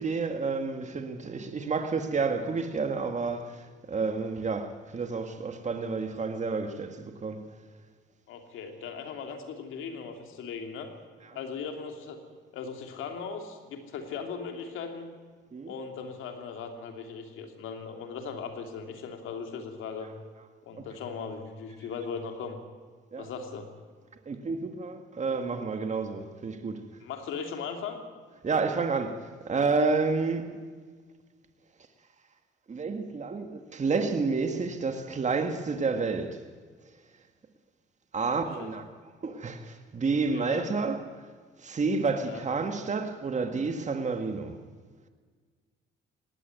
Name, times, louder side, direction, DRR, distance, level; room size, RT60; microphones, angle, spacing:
voice 1, 0.0-7.4 11.2-11.4 15.5-15.7 23.1-23.3 24.3-26.9 28.4-30.6 32.7-36.5 38.1-38.8 39.2-41.1 41.6-44.6, right 4 dB, 35° right, 2.0 m, -30 dB
voice 2, 8.3-10.9 11.3-12.2 12.5-15.1 15.7-20.1 20.6-22.6 23.2-23.7 27.0-28.0 33.3-33.4 38.6-38.7 40.3-40.7 42.2-42.4, left 5 dB, 85° left, 2.9 m, -38 dB
18.5 x 17.5 x 9.6 m
cardioid pair, 90°, 20 cm